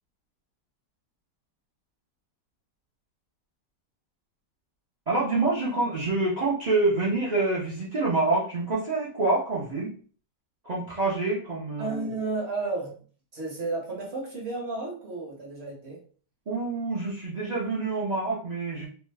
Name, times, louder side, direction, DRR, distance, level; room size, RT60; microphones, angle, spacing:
voice 1, 5.1-9.9 10.6-12.1 16.5-18.9, right 3 dB, 65° right, -7 dB, 0.4 m, -26 dB
voice 2, 11.8-13.0 13.3-16.0, right 3 dB, 45° right, -2 dB, 0.9 m, -32 dB
2.8 x 2.2 x 3.3 m, 0.43 s
omnidirectional pair, 1.9 m